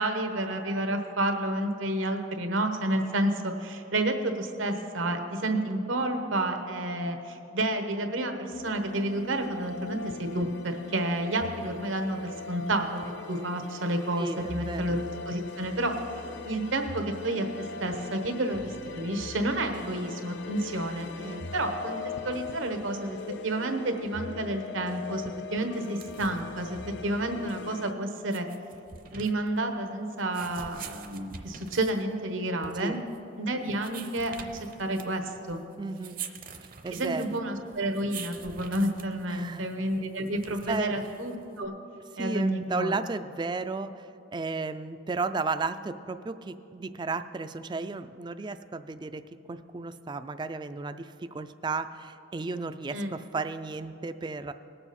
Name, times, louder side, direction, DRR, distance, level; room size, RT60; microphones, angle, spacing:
voice 1, 0.0-13.0 13.3-15.9 16.4-17.5 17.8-22.0 22.2-23.2 23.4-28.5 29.1-33.0 33.4-35.6 36.9-41.7 42.2-43.0 52.9-53.1, right 1 dB, 85° right, 6 dB, 1.1 m, -30 dB
sound 1, 8.5-27.9, left 5 dB, 60° left, 0.5 m, -41 dB
voice 2, 14.2-14.8 21.2-21.5 32.8-33.0 35.8-36.2 36.8-37.4 39.3-39.7 40.2-40.3 40.7-40.9 42.1-54.5, right 3 dB, 25° right, 11 dB, 0.3 m, -34 dB
sound 2, 25.8-41.7, right 7 dB, 45° right, 0.7 m, -46 dB
19.5 x 6.9 x 4.2 m, 2.7 s
head